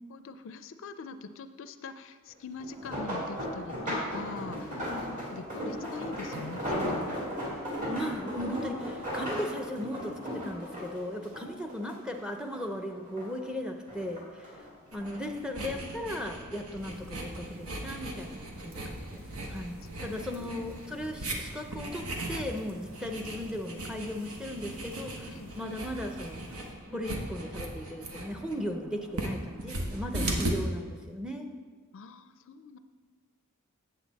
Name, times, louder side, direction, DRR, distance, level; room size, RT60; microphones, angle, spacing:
voice 1, 0.1-7.1 20.0-20.2 25.3-25.5 31.9-32.8, left 4 dB, 60° left, 10 dB, 0.4 m, -43 dB
sound 1, 2.6-12.2 12.5-13.5 13.9-15.2 16.0-16.3 16.7-16.8, equal, 35° right, 2.1 m, -36 dB
voice 2, 7.9-14.5 14.9-19.2 19.5-25.3 25.6-26.5 26.9-31.5, left 1 dB, 5° right, 3 dB, 0.6 m, -37 dB
sound 2, 14.9-30.5, right 1 dB, 85° right, 1.1 m, -38 dB
sound 3, 16.8-26.7, right 1 dB, 65° right, 1.4 m, -48 dB
8.1 x 7.4 x 4.0 m, 1.5 s
head